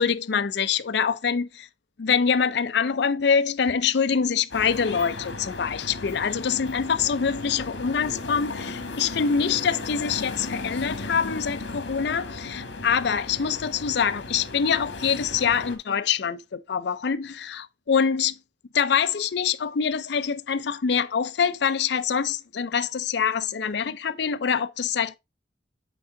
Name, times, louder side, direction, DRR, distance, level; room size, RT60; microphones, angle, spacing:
voice 1, 0.0-1.7 2.0-18.4 18.7-25.2, left 6 dB, 65° left, 0.5 m, -25 dB
sound 1, 4.5-15.8, left 3 dB, 85° left, 1.5 m, -36 dB
8.3 x 3.7 x 3.8 m
head